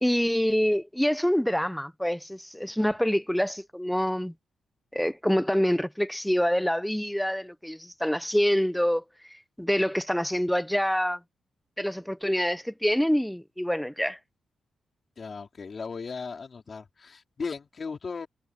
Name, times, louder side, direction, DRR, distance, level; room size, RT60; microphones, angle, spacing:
voice 1, 0.0-4.3 4.9-9.0 9.6-11.2 11.8-14.2, equal, 5° left, 0.7 m, -26 dB
voice 2, 15.2-18.3, left 5 dB, 40° left, 3.7 m, -37 dB
cardioid pair, 115°, 0 cm